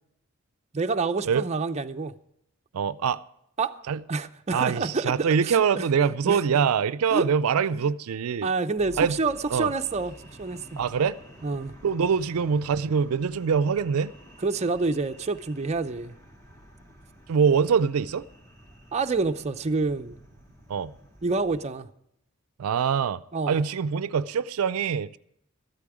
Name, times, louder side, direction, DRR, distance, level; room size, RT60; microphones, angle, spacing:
voice 1, 0.7-2.1 3.6-3.8 4.1-5.9 6.2-6.4 7.1-7.3 7.7-7.8 8.4-10.8 11.4-11.7 14.4-16.1 18.9-20.2 21.2-21.9 23.3-23.6, right 3 dB, 30° right, 0.5 m, -28 dB
voice 2, 2.7-3.2 3.9-4.0 4.5-8.5 9.0-9.2 9.5-9.7 10.8-11.2 11.8-14.1 17.3-18.2 20.7-20.9 22.6-25.2, right 6 dB, 85° right, 0.4 m, -24 dB
sound 1, 8.8-21.7, equal, 15° left, 2.5 m, -50 dB
13.5 x 12.0 x 4.8 m
head